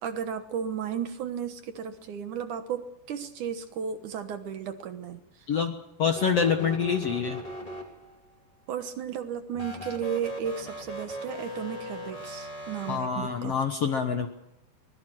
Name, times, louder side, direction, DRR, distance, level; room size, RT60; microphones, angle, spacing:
voice 1, 0.0-5.2 8.7-13.6, right 7 dB, 65° right, 8 dB, 2.4 m, -34 dB
voice 2, 6.0-7.4 12.9-14.3, left 6 dB, 60° left, 5 dB, 1.7 m, -26 dB
sound 1, 6.1-8.3 9.5-13.0, equal, 10° left, 3.3 m, -39 dB
23.5 x 21.0 x 6.3 m, 0.84 s
omnidirectional pair, 4.4 m